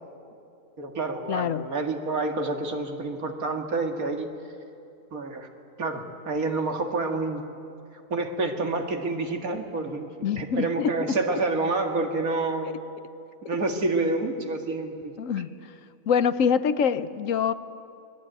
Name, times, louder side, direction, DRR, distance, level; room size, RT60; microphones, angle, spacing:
voice 1, 0.8-4.3 5.1-5.5 5.8-7.4 8.1-10.1 10.4-12.8 13.4-15.1, right 3 dB, 90° right, 4 dB, 2.5 m, -28 dB
voice 2, 1.3-1.6 10.2-11.2 15.2-15.5 16.1-17.5, left 7 dB, 70° left, 14 dB, 1.2 m, -25 dB
27.5 x 21.5 x 9.0 m, 2.6 s
omnidirectional pair, 1.5 m